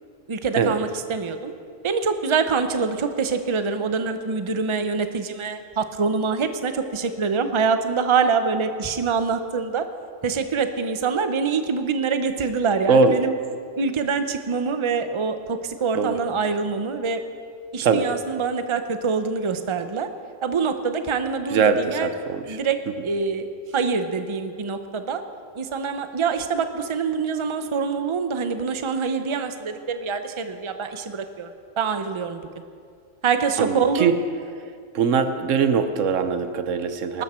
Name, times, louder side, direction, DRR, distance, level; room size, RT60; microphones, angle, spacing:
voice 1, 0.3-1.5 1.8-9.8 10.2-13.3 13.8-17.2 17.7-20.1 20.4-22.1 22.5-22.8 23.0-23.5 23.7-25.2 25.6-31.5 31.8-32.4 33.2-34.1, right 5 dB, 30° right, 8 dB, 0.7 m, -25 dB
voice 2, 21.5-22.6 33.6-34.1 34.9-37.2, right 5 dB, 80° right, 9 dB, 1.2 m, -21 dB
20.0 x 12.5 x 4.4 m, 2.3 s
omnidirectional pair, 1.3 m